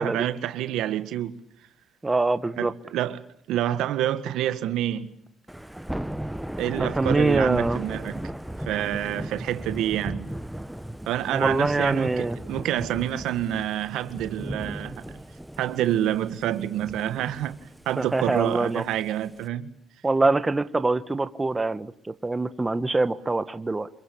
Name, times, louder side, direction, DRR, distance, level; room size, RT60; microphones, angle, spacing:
voice 1, 0.0-1.4 2.6-3.2 3.5-5.1 6.6-8.2 8.7-10.3 11.1-15.2 15.6-17.6 17.9-19.7, right 12 dB, 90° right, 1.8 m, -27 dB
voice 2, 2.0-2.7 6.8-7.8 11.3-12.4 18.0-18.8 20.0-23.9, right 3 dB, 20° right, 1.3 m, -24 dB
Thunder / Rain, 5.5-19.5, right 1 dB, 5° right, 1.1 m, -36 dB
28.0 x 23.0 x 8.6 m
cardioid pair, 90°, 0 cm